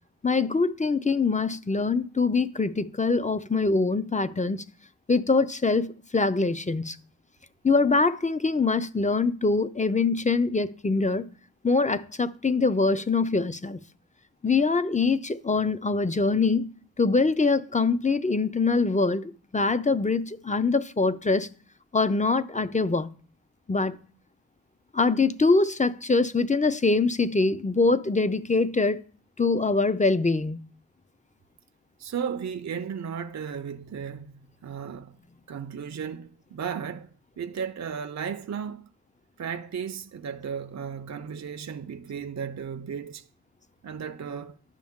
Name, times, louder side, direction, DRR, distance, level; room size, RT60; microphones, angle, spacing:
voice 1, 0.2-4.6 5.1-7.0 7.6-11.3 11.6-13.8 14.4-16.7 17.0-21.5 21.9-23.1 23.7-24.0 24.9-29.0 29.4-30.6, left 3 dB, 20° left, 0.4 m, -24 dB
voice 2, 32.0-35.2 35.5-38.9 39.4-43.3 43.8-44.6, right 7 dB, 45° right, 0.5 m, -35 dB
10.5 x 6.1 x 3.6 m
wide cardioid pair, 60°, 39 cm